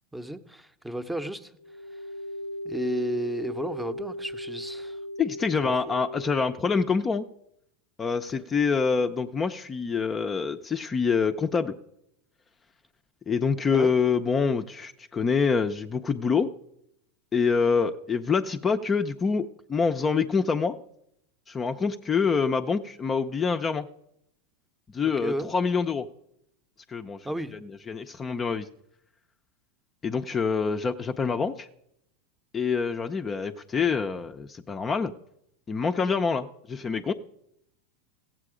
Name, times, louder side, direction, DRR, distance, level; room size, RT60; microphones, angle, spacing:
voice 1, 0.1-1.6 1.9-2.1 2.6-5.0 5.6-6.0 13.7-13.9 25.2-25.5 27.2-27.5, equal, 5° right, 10 dB, 0.8 m, -33 dB
sound 1, 1.6-6.5, left 1 dB, 90° left, 0.6 m, -37 dB
voice 2, 5.2-7.2 8.0-11.8 13.3-16.5 17.3-20.8 21.5-23.9 24.9-26.1 26.9-27.3 27.9-28.7 30.0-31.7 32.5-35.1 35.7-37.1, left 5 dB, 25° left, 7 dB, 0.5 m, -26 dB
15.5 x 7.5 x 4.9 m, 0.79 s
hypercardioid pair, 100°, 0 cm